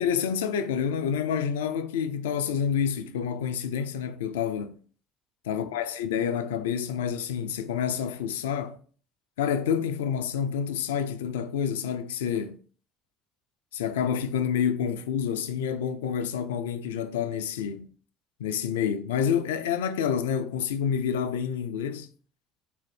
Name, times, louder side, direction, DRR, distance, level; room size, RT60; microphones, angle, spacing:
voice 1, 0.0-4.8 5.5-8.8 9.4-12.6 13.7-17.9 18.4-22.1, left 8 dB, 80° left, 0.3 m, -28 dB
4.0 x 2.5 x 3.3 m
hypercardioid pair, 65°, 0 cm